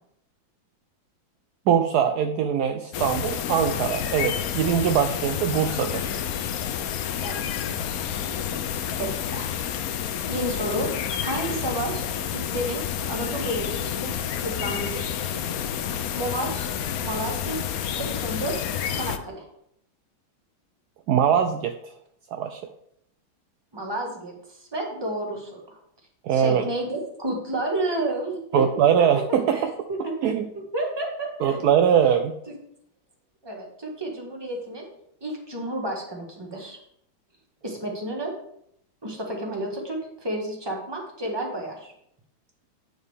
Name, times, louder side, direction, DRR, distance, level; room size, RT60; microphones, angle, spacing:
voice 1, 1.7-6.2 21.1-21.8 22.3-22.6 26.2-26.6 28.5-29.7 30.2-30.5 31.4-32.3, right 8 dB, 80° right, 7 dB, 0.9 m, -22 dB
sound 1, 2.9-19.2, left 9 dB, 80° left, 0.8 m, -29 dB
voice 2, 7.2-7.7 8.9-9.6 10.3-10.9 11.2-12.8 13.1-14.1 14.4-15.4 16.1-16.7 17.0-17.6 17.9-18.5 18.9-19.4 23.7-25.8 26.3-28.7 29.0-29.1 29.5-30.3 30.5-31.6 33.4-34.8 35.2-36.8 37.6-38.3 39.0-41.9, right 1 dB, 15° right, 0 dB, 1.4 m, -31 dB
9.2 x 6.4 x 3.5 m, 0.72 s
omnidirectional pair, 2.2 m